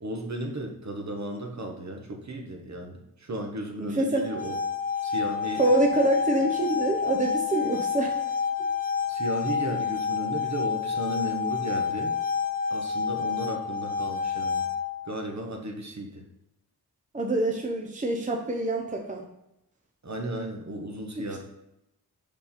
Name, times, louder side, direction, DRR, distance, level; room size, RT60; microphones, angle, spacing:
voice 1, 0.0-4.6 5.0-5.6 9.1-12.1 12.7-14.7 15.0-16.2 20.0-21.4, right 1 dB, 45° right, 3 dB, 1.2 m, -34 dB
voice 2, 3.8-4.3 5.6-8.2 17.1-19.2 21.3-21.4, right 1 dB, 20° right, 1 dB, 0.8 m, -25 dB
sound 1, 4.2-15.2, left 6 dB, 20° left, 0.6 m, -29 dB
5.3 x 5.3 x 4.2 m, 0.85 s
wide cardioid pair, 80°, 38 cm